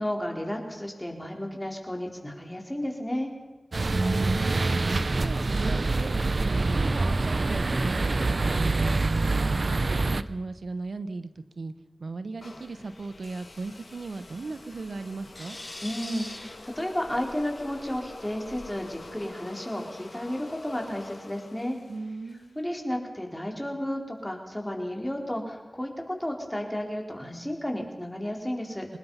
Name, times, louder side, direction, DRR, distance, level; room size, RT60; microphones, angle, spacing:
voice 1, 0.0-3.3 15.8-21.8 22.6-28.9, left 1 dB, 15° left, 2 dB, 4.3 m, -32 dB
sound 1, 3.7-10.2, right 3 dB, 60° right, 0.7 m, -25 dB
voice 2, 4.1-8.1 9.1-11.7 12.0-15.6 21.9-22.7, right 3 dB, 90° right, 11 dB, 0.9 m, -37 dB
sound 2, 12.4-22.6, left 2 dB, 65° left, 2.6 m, -47 dB
sound 3, 12.4-19.1, left 1 dB, 40° left, 5.4 m, -47 dB
25.0 x 20.0 x 5.7 m, 1.2 s
wide cardioid pair, 60°, 0 cm